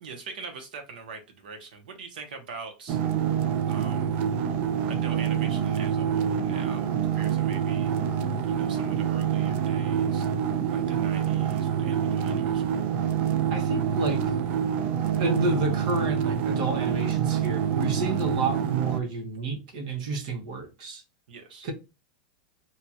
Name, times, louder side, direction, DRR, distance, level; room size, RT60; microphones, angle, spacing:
voice 1, 0.0-3.0 3.7-4.1 4.9-7.9 8.5-10.3 10.7-12.6 21.3-21.7, right 4 dB, 85° right, 1.0 m, -43 dB
sound 1, 2.9-19.0, right 8 dB, 40° right, 0.3 m, -26 dB
voice 2, 13.5-14.2 15.2-21.0 21.6-21.7, right 3 dB, 60° right, 0.8 m, -30 dB
2.8 x 2.4 x 2.8 m
supercardioid pair, 155°, 5 cm